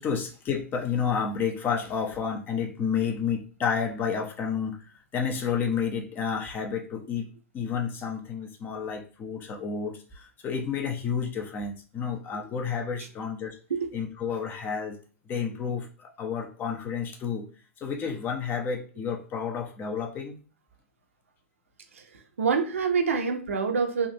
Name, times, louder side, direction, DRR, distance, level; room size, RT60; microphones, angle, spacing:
voice 1, 0.0-4.8 5.1-13.6 13.9-15.0 15.3-17.5 17.8-20.4, left 6 dB, 25° left, 3 dB, 0.8 m, -30 dB
voice 2, 22.4-24.1, right 5 dB, 75° right, 3 dB, 0.9 m, -25 dB
3.6 x 2.5 x 2.9 m, 0.38 s
figure-of-eight pair, 105°, 7 cm